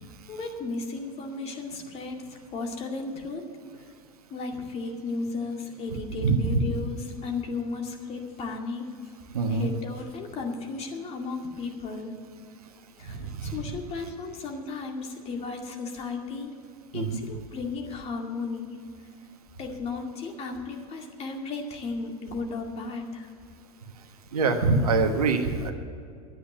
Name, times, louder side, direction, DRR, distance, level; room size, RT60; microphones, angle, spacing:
voice 1, 0.3-3.5 4.3-8.9 9.5-12.3 13.0-16.5 16.9-18.8 19.6-23.3, left 3 dB, 35° left, 2 dB, 2.2 m, -34 dB
voice 2, 6.2-6.6 9.3-9.7 13.1-13.6 16.9-17.2 24.3-25.7, right 3 dB, 75° right, 6 dB, 1.4 m, -24 dB
11.0 x 9.1 x 8.6 m, 2.3 s
hypercardioid pair, 90°, 19 cm